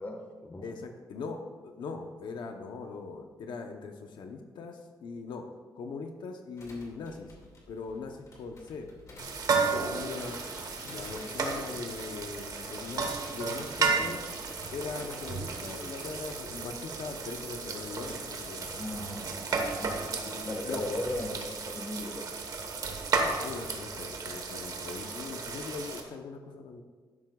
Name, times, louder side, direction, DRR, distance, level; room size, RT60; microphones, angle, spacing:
voice 1, 0.0-0.7 18.8-22.3, left 1 dB, 25° left, 2 dB, 1.4 m, -38 dB
voice 2, 0.6-5.4 5.8-7.3 7.7-8.9 9.5-10.4 10.8-14.2 14.7-18.8 20.2-20.9 23.1-26.8, left 4 dB, 85° left, 4 dB, 0.8 m, -40 dB
sound 1, 6.6-21.6, left 2 dB, 45° left, 2.2 m, -50 dB
sound 2, 9.2-26.0, right 4 dB, 55° right, 1.2 m, -34 dB
12.5 x 11.0 x 2.4 m, 1.4 s
wide cardioid pair, 165°, 8 cm